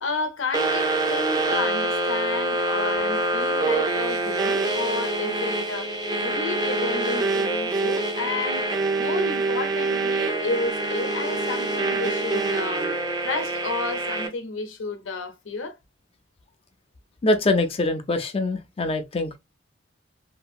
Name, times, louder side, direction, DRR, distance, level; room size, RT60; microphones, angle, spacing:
voice 1, 0.0-6.0 6.2-15.8, left 3 dB, 90° left, 0.7 m, -32 dB
sound 1, 0.5-14.3, right 2 dB, 20° right, 0.5 m, -25 dB
voice 2, 17.2-19.4, left 2 dB, 30° left, 0.4 m, -24 dB
2.8 x 2.6 x 2.3 m
head